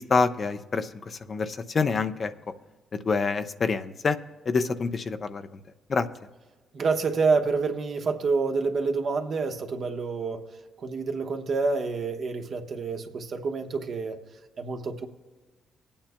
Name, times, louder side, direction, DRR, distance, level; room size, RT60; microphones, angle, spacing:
voice 1, 0.0-2.3 2.9-4.2 4.5-5.6 5.9-6.1, left 4 dB, 45° left, 9 dB, 0.6 m, -27 dB
voice 2, 6.7-10.5 10.8-14.2 14.6-15.1, right 4 dB, 60° right, 4 dB, 1.1 m, -28 dB
24.0 x 8.7 x 2.2 m, 1.3 s
supercardioid pair, 65°, 0 cm